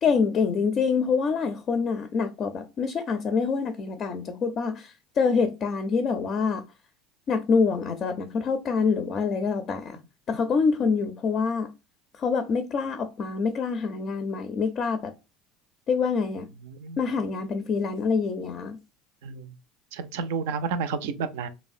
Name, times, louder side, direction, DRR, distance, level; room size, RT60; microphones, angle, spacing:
voice 1, 0.0-6.6 7.3-10.0 10.3-11.7 12.2-15.1 15.9-16.4 17.0-18.8, left 5 dB, 40° left, 0.4 m, -26 dB
voice 2, 16.6-17.0 19.2-19.5 19.9-21.5, right 5 dB, 85° right, 0.4 m, -31 dB
3.2 x 2.0 x 2.5 m
supercardioid pair, 120°, 0 cm